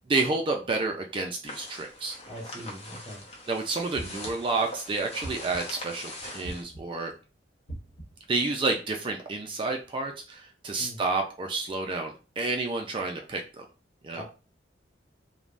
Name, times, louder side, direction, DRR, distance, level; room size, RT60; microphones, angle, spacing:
voice 1, 0.1-2.2 3.5-7.1 8.3-13.6 14.0-14.2, right 3 dB, 30° right, 3 dB, 0.3 m, -30 dB
sound 1, 1.4-6.6, left 1 dB, 35° left, 0.7 m, -42 dB
voice 2, 2.3-3.2 10.8-11.0 14.2-14.3, equal, 5° left, -4 dB, 0.8 m, -41 dB
sound 2, 3.9-4.6 5.2-5.9 6.4-7.1 7.7-8.3, right 1 dB, 80° left, 1.0 m, -42 dB
3.2 x 2.1 x 2.5 m, 0.33 s
head